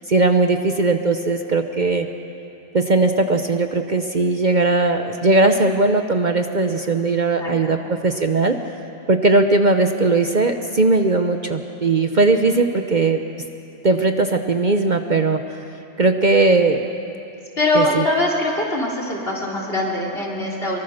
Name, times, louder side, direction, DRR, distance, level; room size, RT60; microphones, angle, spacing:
voice 1, 0.1-2.1 2.7-8.6 9.1-13.2 13.8-15.6 16.0-16.9 17.7-18.0, right 3 dB, 40° right, 6 dB, 1.0 m, -18 dB
voice 2, 7.4-7.8 17.6-20.8, left 1 dB, 55° left, -3 dB, 3.9 m, -22 dB
24.5 x 23.0 x 6.5 m, 2.9 s
omnidirectional pair, 1.2 m